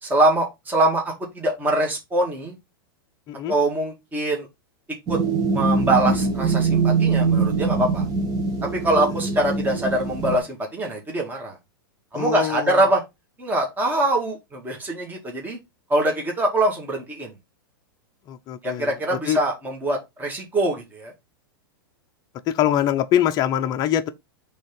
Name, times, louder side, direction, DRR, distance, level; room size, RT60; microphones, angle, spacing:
voice 1, 0.0-2.6 3.5-4.5 5.1-5.2 5.5-8.1 8.6-11.6 12.1-13.0 13.4-15.6 15.9-17.3 18.6-21.1, right 1 dB, 15° right, 1.9 m, -23 dB
sound 1, 5.1-10.4, right 4 dB, 30° right, 1.4 m, -23 dB
voice 2, 12.1-12.8 18.3-19.4 22.5-24.1, left 11 dB, 35° left, 0.6 m, -23 dB
5.1 x 3.5 x 5.3 m
hypercardioid pair, 120°, 12 cm